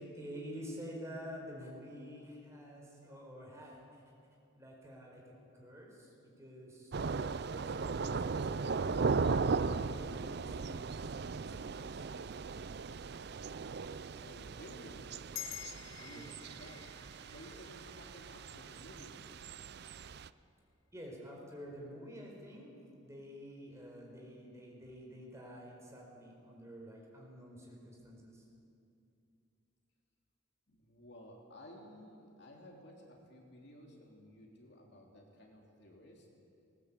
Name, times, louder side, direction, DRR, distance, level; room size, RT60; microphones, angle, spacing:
voice 1, 0.0-4.0 4.5-12.1 16.0-16.4 20.9-28.4, equal, 15° right, -2 dB, 4.5 m, -49 dB
Thunder / Rain, 6.9-20.3, right 4 dB, 55° right, 0.5 m, -37 dB
voice 2, 14.2-15.2 16.0-19.2 30.7-36.3, equal, 55° left, 0 dB, 3.2 m, -55 dB
sound 1, 15.3-20.1, left 13 dB, 80° left, 0.7 m, -50 dB
20.0 x 18.5 x 8.5 m, 2.6 s
head